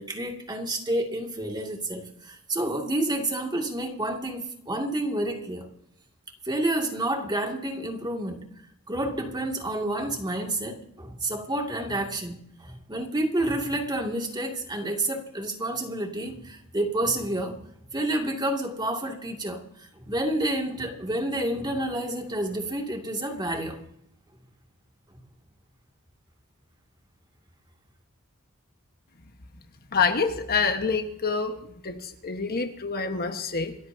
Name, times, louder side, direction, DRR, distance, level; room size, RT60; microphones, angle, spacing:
voice 1, 0.0-5.7 6.4-8.4 8.9-17.6 17.9-23.8, right 1 dB, 20° right, 2 dB, 2.2 m, -29 dB
voice 2, 29.9-31.6 31.8-33.8, left 5 dB, 45° left, 6 dB, 1.3 m, -26 dB
27.5 x 14.0 x 2.7 m, 0.76 s
head